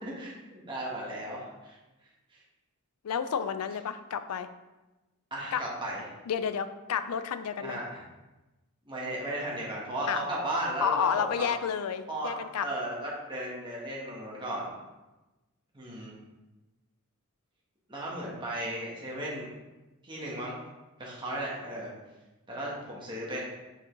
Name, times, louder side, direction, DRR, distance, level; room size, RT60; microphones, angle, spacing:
voice 1, 0.0-1.8 5.3-6.0 7.6-8.0 8.9-11.1 11.4-11.5 12.1-12.3 12.6-14.7 15.7-16.1 17.9-19.5 20.0-20.6 21.0-21.9 22.5-23.4, right 1 dB, 20° right, -5 dB, 1.4 m, -35 dB
voice 2, 3.0-4.5 5.5-5.6 6.3-7.8 10.1-10.3 10.8-12.7, left 7 dB, 85° left, 11 dB, 0.4 m, -30 dB
5.3 x 5.1 x 3.9 m, 1.1 s
head